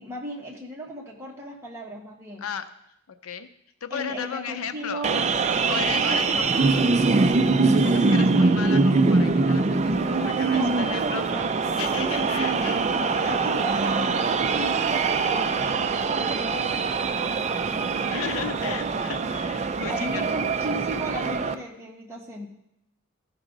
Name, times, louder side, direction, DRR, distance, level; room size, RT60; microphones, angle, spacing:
voice 1, 0.0-2.5 3.9-5.3 5.6-7.0 7.9-8.3 10.4-11.5 11.9-12.4 12.9-18.3 19.9-22.5, equal, 15° right, -2 dB, 1.5 m, -36 dB
voice 2, 2.4-2.7 3.1-3.5 3.8-5.1 5.7-6.8 7.7-11.3 11.8-13.4 15.6-15.8 18.1-20.2, left 7 dB, 90° left, 10 dB, 0.6 m, -35 dB
sound 1, 5.0-21.5, right 4 dB, 30° right, 0.4 m, -23 dB
14.0 x 6.1 x 3.9 m, 0.80 s
head